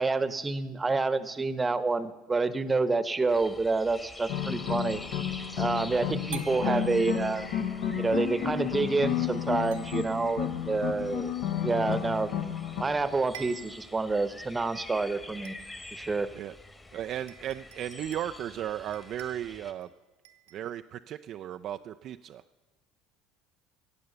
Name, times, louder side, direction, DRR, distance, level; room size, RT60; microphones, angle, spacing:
voice 1, 0.0-5.0 5.6-7.5 7.9-11.3 11.6-12.3 12.8-15.6 15.9-16.3, right 3 dB, 20° right, 14 dB, 0.9 m, -28 dB
Wine glass tinkles, 2.6-3.2 6.3-7.6 9.7-10.5 12.6-12.7 13.0-13.1 13.3-14.0 14.5-14.6 15.4-16.0 16.8-16.9 17.3-18.4 18.9-19.9 20.2-20.7, right 12 dB, 80° right, 1.1 m, -48 dB
sound 1, 3.3-19.7, left 2 dB, 20° left, 1.4 m, -47 dB
sound 2, 4.3-12.8, left 9 dB, 70° left, 1.2 m, -32 dB
voice 2, 16.9-19.9 20.5-22.4, right 11 dB, 50° right, 9 dB, 0.3 m, -35 dB
15.0 x 8.5 x 6.8 m, 1.2 s
hypercardioid pair, 65°, 0 cm